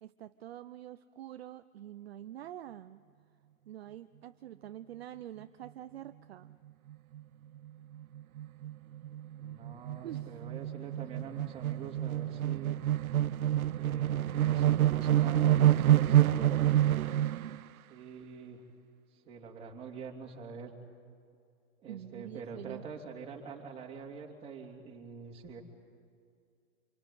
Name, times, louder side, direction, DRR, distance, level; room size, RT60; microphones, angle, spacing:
voice 1, 0.0-3.0 3.7-6.5 10.0-10.4 21.9-22.9, right 12 dB, 50° right, 10 dB, 0.7 m, -46 dB
sound 1, 6.9-7.2 7.6-7.7 7.9-17.6, right 12 dB, 90° right, 0.6 m, -28 dB
voice 2, 9.4-12.8 13.8-16.9 17.9-18.6 19.1-20.8 21.8-25.6, right 5 dB, 15° right, 0 dB, 3.1 m, -45 dB
27.0 x 23.5 x 9.3 m, 2.3 s
hypercardioid pair, 155°, 41 cm